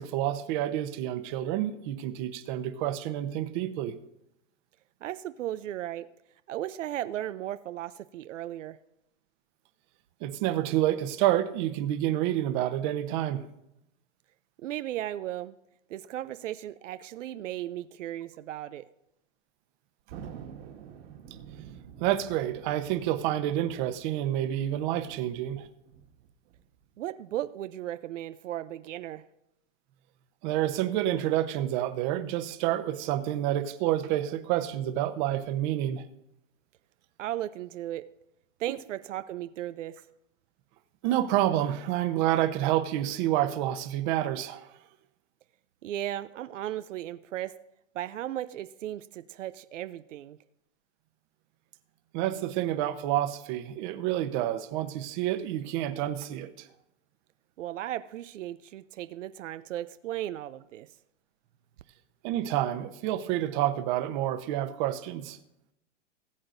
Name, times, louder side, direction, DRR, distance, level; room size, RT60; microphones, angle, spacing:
voice 1, 0.0-4.0 10.2-13.5 22.0-25.7 30.4-36.0 41.0-44.8 52.1-56.7 62.2-65.4, right 13 dB, 40° right, 9 dB, 0.9 m, -28 dB
voice 2, 5.0-6.1 6.5-8.8 14.6-15.5 15.9-18.9 27.0-29.2 37.2-38.1 38.6-40.0 45.8-47.5 47.9-50.4 57.6-60.9, right 13 dB, 85° right, 13 dB, 0.5 m, -36 dB
Thunder, 20.1-26.9, right 8 dB, 55° right, 1.8 m, -48 dB
19.0 x 7.8 x 2.6 m, 0.83 s
hypercardioid pair, 135°, 37 cm